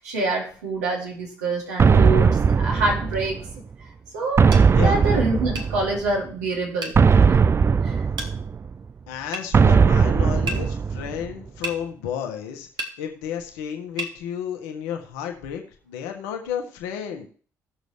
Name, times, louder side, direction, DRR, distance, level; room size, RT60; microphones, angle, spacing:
voice 1, 0.0-3.4 3.8-3.9 4.1-4.5 4.8-7.4 7.8-8.0, right 2 dB, 80° right, -2 dB, 2.8 m, -26 dB
sound 1, 1.8-3.6 4.4-6.1 6.9-8.7 9.5-11.3, right 5 dB, 30° right, 0.4 m, -18 dB
sound 2, 4.5-4.7 5.6-5.7 6.8-7.0 8.2-8.3 9.3-9.5 10.5-10.6 11.6-11.8 12.8-13.0 14.0-14.2, right 2 dB, 60° right, 1.7 m, -31 dB
voice 2, 9.1-12.7 13.0-17.3, left 8 dB, 75° left, 3 dB, 1.5 m, -32 dB
18.0 x 6.7 x 3.4 m, 0.43 s
hypercardioid pair, 45°, 8 cm